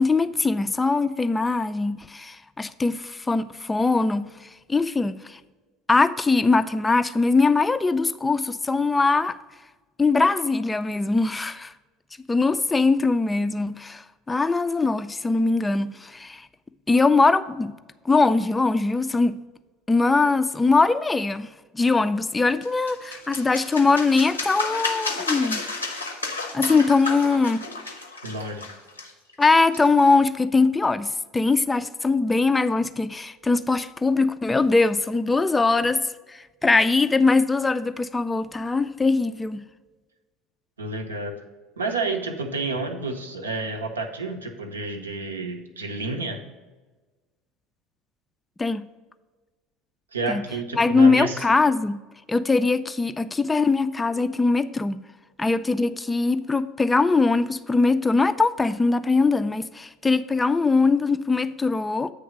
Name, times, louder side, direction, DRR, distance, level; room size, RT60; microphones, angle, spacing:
voice 1, 0.0-4.3 4.7-5.4 5.9-9.4 10.0-11.7 12.3-14.0 14.3-16.4 16.9-17.7 18.1-19.4 19.9-21.5 21.7-25.6 26.5-27.7 29.4-36.0 36.6-39.6 48.6-48.9 50.3-50.4 50.7-52.0 52.3-55.0 55.4-62.1, left 3 dB, 15° left, 0.3 m, -21 dB
sound 1, 22.6-30.1, left 3 dB, 85° left, 0.7 m, -32 dB
voice 2, 28.2-28.7 40.8-41.4 41.8-46.4 50.1-51.4, right 3 dB, 80° right, 0.7 m, -30 dB
8.5 x 3.3 x 6.1 m
figure-of-eight pair, 65°, 0 cm